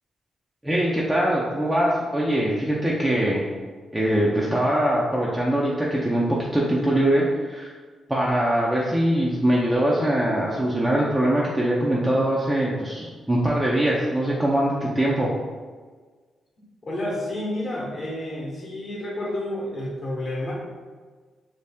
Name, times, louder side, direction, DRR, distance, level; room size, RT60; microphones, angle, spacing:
voice 1, 0.6-3.4 3.9-7.7 8.1-15.3, right 1 dB, 5° right, -5 dB, 0.4 m, -22 dB
voice 2, 16.8-20.5, left 1 dB, 35° left, -5 dB, 0.9 m, -30 dB
3.1 x 2.7 x 3.4 m, 1.5 s
cardioid pair, 110°, 0 cm